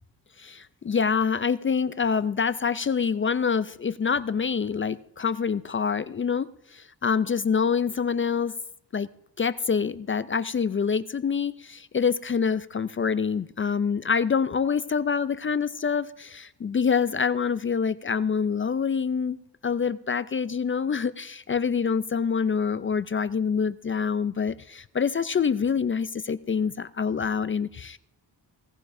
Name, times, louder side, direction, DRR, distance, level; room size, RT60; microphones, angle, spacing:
voice 1, 0.4-8.5 8.9-9.1 9.4-19.4 19.6-28.0, left 6 dB, 30° left, 0.4 m, -26 dB
18.0 x 15.0 x 2.6 m
cardioid pair, 85°, 43 cm